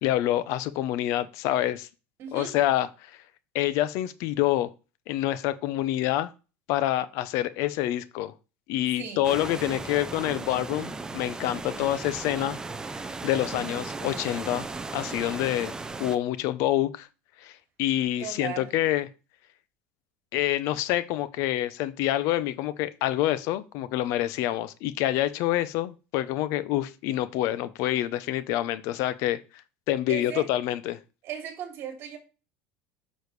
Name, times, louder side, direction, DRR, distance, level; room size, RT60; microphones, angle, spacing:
voice 1, 0.0-1.9 2.3-2.9 3.5-4.7 5.1-6.3 6.7-8.3 8.7-12.6 13.2-14.7 14.9-15.7 16.0-17.1 17.4-17.5 17.8-19.1 20.3-29.4 29.9-31.0, left 13 dB, 60° left, 0.7 m, -27 dB
voice 2, 2.2-2.6 9.0-9.2 18.2-18.7 30.1-30.5 31.2-32.2, right 8 dB, 50° right, 2.7 m, -37 dB
sound 1, 9.2-16.2, right 3 dB, 10° right, 0.6 m, -36 dB
7.0 x 6.3 x 3.2 m
supercardioid pair, 120°, 6 cm